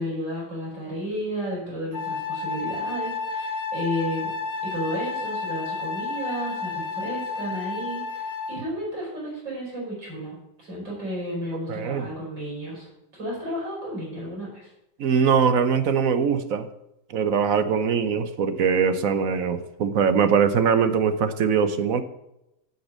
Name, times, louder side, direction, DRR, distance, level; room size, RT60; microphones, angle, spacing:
voice 1, 0.0-4.3 4.7-12.9 13.1-14.7, equal, 85° right, -4 dB, 6.1 m, -32 dB
Wind instrument woodwind instrument, 1.9-8.7, left 4 dB, 40° left, 1.7 m, -31 dB
voice 2, 11.7-12.1 15.0-16.7 17.1-22.0, right 6 dB, 60° right, 11 dB, 1.1 m, -22 dB
8.4 x 8.1 x 7.3 m, 0.86 s
omnidirectional pair, 1.9 m